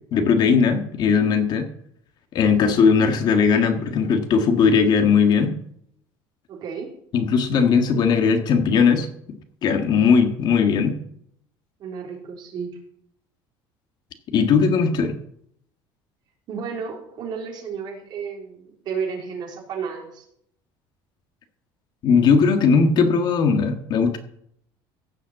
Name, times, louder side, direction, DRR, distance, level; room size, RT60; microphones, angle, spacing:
voice 1, 0.1-1.7 2.3-5.5 7.1-9.1 9.6-11.0 14.3-15.2 22.0-24.2, left 5 dB, 45° left, 6 dB, 1.7 m, -18 dB
voice 2, 6.5-6.9 11.8-12.7 16.5-20.2, right 6 dB, 45° right, 1 dB, 3.6 m, -32 dB
16.0 x 5.7 x 7.6 m, 0.70 s
cardioid pair, 150°, 10 cm